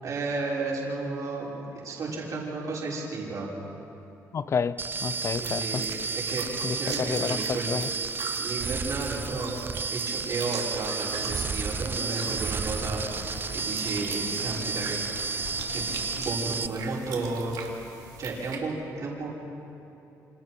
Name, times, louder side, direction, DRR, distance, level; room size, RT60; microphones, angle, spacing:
voice 1, 0.0-3.5 5.4-6.5 6.7-7.7 8.4-9.5 9.9-15.0 15.7-17.5 18.2-19.4, right 3 dB, 55° right, -5 dB, 6.3 m, -33 dB
voice 2, 4.3-5.8 6.6-7.9, left 6 dB, 45° left, 15 dB, 0.8 m, -30 dB
sound 1, 4.8-16.7, right 5 dB, 30° right, 0.6 m, -32 dB
sound 2, 5.0-18.6, right 6 dB, 80° right, 2.8 m, -42 dB
sound 3, 11.1-16.4, left 9 dB, 85° left, 0.9 m, -43 dB
29.0 x 27.5 x 4.6 m, 2.9 s
cardioid pair, 100°, 7 cm